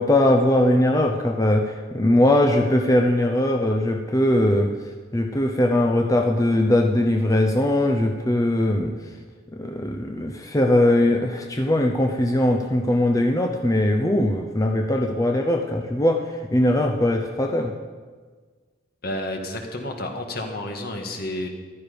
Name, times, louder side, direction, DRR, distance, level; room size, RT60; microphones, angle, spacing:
voice 1, 0.0-4.7 5.1-8.9 9.5-17.7, left 1 dB, 20° left, 3 dB, 0.8 m, -20 dB
voice 2, 19.0-21.5, left 1 dB, 55° left, 3 dB, 1.8 m, -30 dB
14.0 x 12.0 x 5.2 m, 1.5 s
head